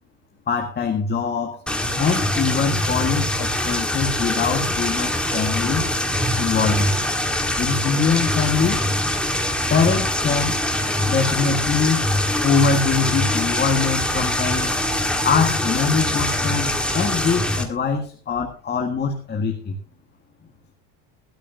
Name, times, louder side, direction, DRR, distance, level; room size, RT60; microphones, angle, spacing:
voice 1, 0.5-1.6 2.0-5.9 6.4-7.0 7.6-8.9 9.7-10.6 11.0-12.1 12.4-14.7 15.2-19.8, left 5 dB, 25° left, 2 dB, 1.8 m, -23 dB
sound 1, 1.7-17.6, left 1 dB, ahead, 1.7 m, -23 dB
18.5 x 13.0 x 2.8 m, 0.39 s
cardioid pair, 145°, 43 cm